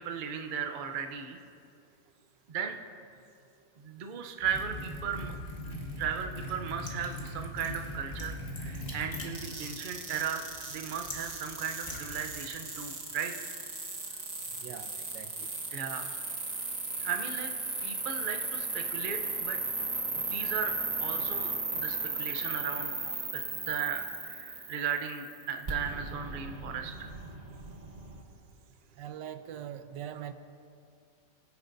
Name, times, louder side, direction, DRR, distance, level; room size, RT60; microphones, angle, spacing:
voice 1, 0.0-1.4 2.5-2.8 3.8-5.3 5.6-13.3 15.7-16.1 17.0-17.5 17.8-19.6 20.1-20.7 21.0-22.9 23.3-27.1, right 7 dB, 65° right, 5 dB, 0.5 m, -36 dB
Liquid, 4.4-12.7, left 1 dB, 25° left, 1.4 m, -41 dB
sound 1, 9.3-28.2, right 3 dB, 30° right, 0.9 m, -36 dB
voice 2, 14.6-15.5 29.0-30.3, right 10 dB, 80° right, 10 dB, 1.2 m, -42 dB
22.0 x 9.7 x 2.6 m, 2.4 s
omnidirectional pair, 1.9 m